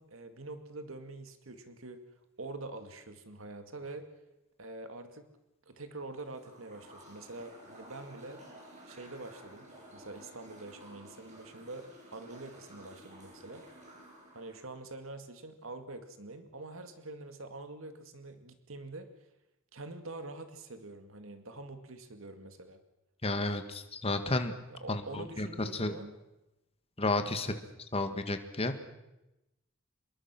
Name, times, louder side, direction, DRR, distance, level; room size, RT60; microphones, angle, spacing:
voice 1, 0.0-2.0 2.4-4.0 4.6-5.3 5.7-8.4 8.9-13.6 14.3-19.1 19.7-22.8 24.7-26.1 27.4-27.6, right 2 dB, 85° right, 8 dB, 2.2 m, -45 dB
sound 1, 6.1-14.8, right 1 dB, 35° right, 7.2 m, -53 dB
voice 2, 23.2-24.5 24.9-25.9 27.0-27.5 27.9-28.8, left 2 dB, 30° left, 8 dB, 1.8 m, -32 dB
25.5 x 22.0 x 6.1 m, 0.95 s
head